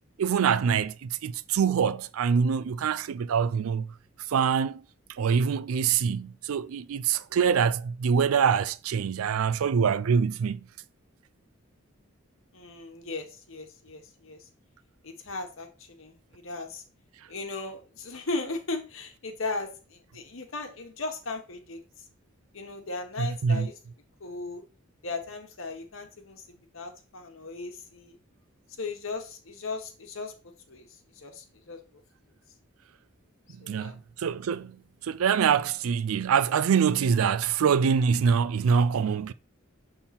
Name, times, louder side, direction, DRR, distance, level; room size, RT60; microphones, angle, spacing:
voice 1, 0.2-3.9 4.3-4.8 5.1-10.6 23.2-23.7 33.6-34.8 35.0-39.3, right 6 dB, 90° right, 0.4 m, -25 dB
voice 2, 12.5-14.5 15.0-16.8 17.3-21.8 22.5-23.7 24.2-24.6 25.0-28.2 28.8-30.3 30.7-30.9 31.2-31.8 33.6-34.0, left 3 dB, 75° left, 1.3 m, -37 dB
7.1 x 3.7 x 4.2 m
head